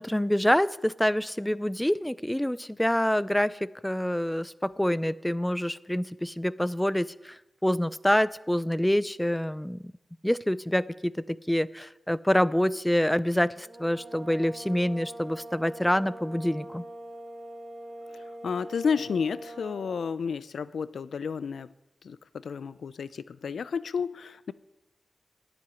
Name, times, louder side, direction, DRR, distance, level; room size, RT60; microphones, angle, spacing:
voice 1, 0.0-7.3 7.6-9.9 10.2-16.8, equal, 5° left, 17 dB, 0.4 m, -26 dB
sound 1, 13.6-20.2, right 1 dB, 30° right, 1.9 m, -43 dB
voice 2, 18.1-21.7 22.0-24.5, left 6 dB, 85° left, 16 dB, 0.5 m, -31 dB
11.5 x 7.9 x 9.8 m, 0.96 s
wide cardioid pair, 105°, 0 cm